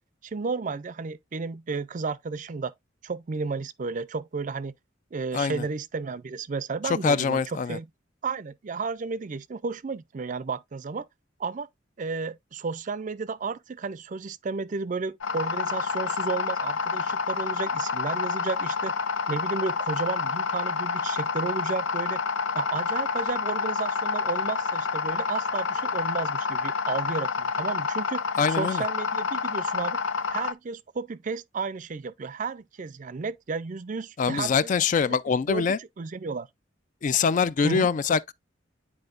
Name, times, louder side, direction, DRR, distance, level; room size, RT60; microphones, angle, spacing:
voice 1, 0.2-2.7 3.0-4.7 5.1-7.9 8.2-11.1 11.4-11.7 12.0-18.9 19.3-22.2 22.5-28.2 28.5-30.0 30.3-34.7 35.1-35.2 35.5-35.7 36.0-36.5 37.6-37.9, right 4 dB, 40° right, 0.4 m, -32 dB
voice 2, 5.3-5.7 6.8-7.8 28.4-28.8 34.2-35.8 37.0-38.3, left 5 dB, 40° left, 0.3 m, -24 dB
sound 1, 15.2-30.5, left 5 dB, 90° left, 0.6 m, -28 dB
9.8 x 4.3 x 2.4 m
head